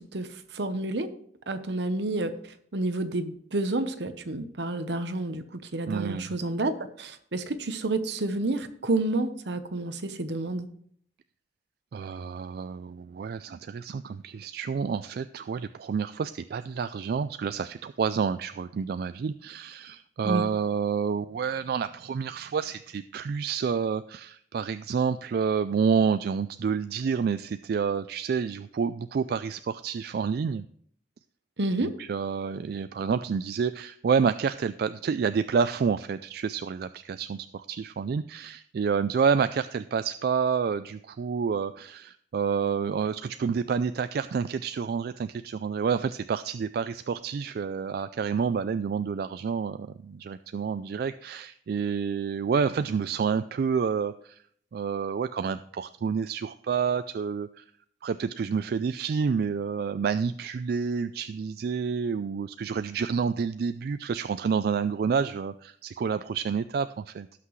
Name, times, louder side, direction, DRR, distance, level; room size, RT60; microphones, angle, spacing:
voice 1, 0.5-1.1 1.5-2.3 2.7-5.4 5.7-6.7 7.0-10.7 20.2-20.4 31.6-31.9, right 2 dB, 80° right, 10 dB, 0.9 m, -29 dB
voice 2, 5.9-6.4 11.9-30.7 31.8-54.4 54.7-57.6 58.0-67.3, right 6 dB, 60° right, 12 dB, 0.3 m, -29 dB
17.5 x 5.9 x 3.1 m, 0.63 s
head